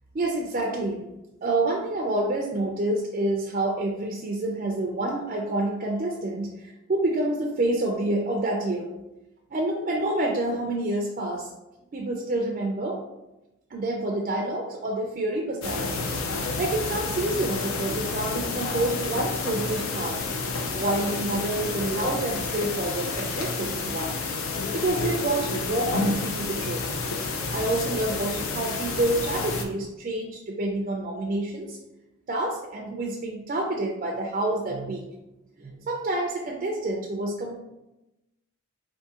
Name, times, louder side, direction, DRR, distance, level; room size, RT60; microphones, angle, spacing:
voice 1, 0.1-1.0 1.4-8.9 9.5-11.5 11.9-13.0 13.7-20.2 20.7-24.2 24.7-26.8 27.5-31.8 32.3-35.0 35.6-37.6, right 2 dB, 40° right, 0 dB, 0.3 m, -28 dB
sound 1, 15.6-29.7, left 4 dB, 70° left, 0.4 m, -30 dB
3.5 x 2.6 x 2.8 m, 0.94 s
head